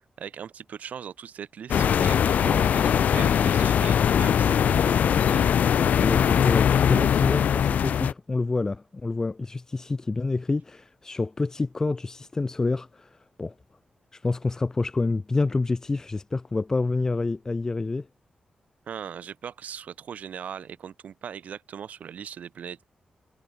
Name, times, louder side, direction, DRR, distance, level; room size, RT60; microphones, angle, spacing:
voice 1, 0.2-5.5 18.9-22.9, right 8 dB, 75° right, 6.9 m, -39 dB
sound 1, 1.7-8.1, left 8 dB, 85° left, 2.6 m, -21 dB
voice 2, 6.0-13.5 14.1-18.1, left 3 dB, 20° left, 4.7 m, -28 dB
wide cardioid pair, 170°, 3 cm